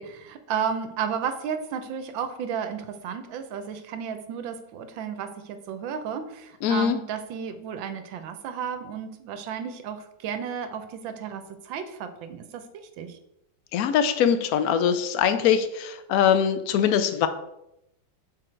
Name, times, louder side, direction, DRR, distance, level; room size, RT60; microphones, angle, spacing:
voice 1, 0.0-12.6 13.0-13.2, right 7 dB, 80° right, 8 dB, 1.4 m, -33 dB
voice 2, 6.6-7.0 13.7-17.3, left 8 dB, 80° left, 10 dB, 0.8 m, -22 dB
6.4 x 3.8 x 4.4 m, 0.84 s
omnidirectional pair, 2.1 m